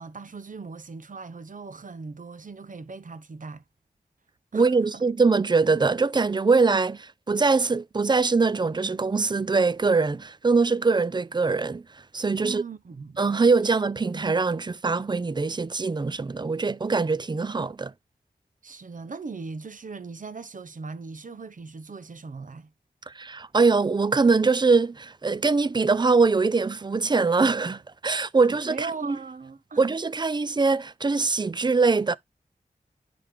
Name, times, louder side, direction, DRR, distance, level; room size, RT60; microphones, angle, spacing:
voice 1, 0.0-3.6 4.5-5.0 12.4-13.2 14.1-14.3 18.6-22.7 28.5-29.9, right 4 dB, 60° right, 0.9 m, -39 dB
voice 2, 4.5-11.8 12.1-12.6 13.2-17.9 23.1-29.2 29.8-32.2, right 4 dB, 30° right, 0.4 m, -23 dB
10.0 x 3.4 x 3.5 m
cardioid pair, 50°, 15 cm